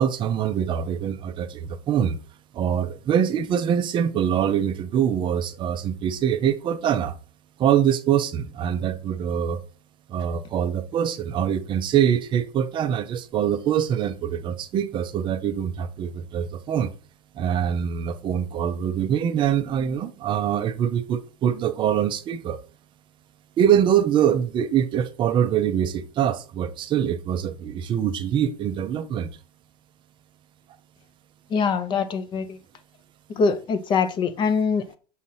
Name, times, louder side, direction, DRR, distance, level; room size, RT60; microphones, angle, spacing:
voice 1, 0.0-2.2 2.5-7.1 7.6-9.6 10.1-16.9 17.3-22.6 23.6-29.3, right 9 dB, 25° right, 0.5 m, -24 dB
voice 2, 31.5-32.6 33.3-35.0, left 5 dB, 20° left, 0.6 m, -23 dB
6.3 x 2.8 x 5.6 m
supercardioid pair, 150°, 21 cm